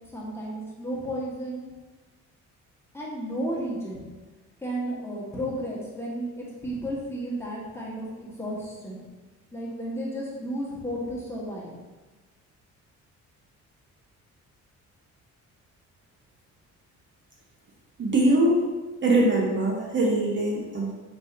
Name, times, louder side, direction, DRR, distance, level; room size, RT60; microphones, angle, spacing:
voice 1, 0.1-1.6 2.9-4.1 4.6-9.0 9.5-11.7, equal, 10° left, -5 dB, 1.3 m, -33 dB
voice 2, 18.0-18.7 19.0-20.9, right 1 dB, 40° right, -2 dB, 0.8 m, -22 dB
4.9 x 3.7 x 2.6 m, 1.2 s
cardioid pair, 90°, 30 cm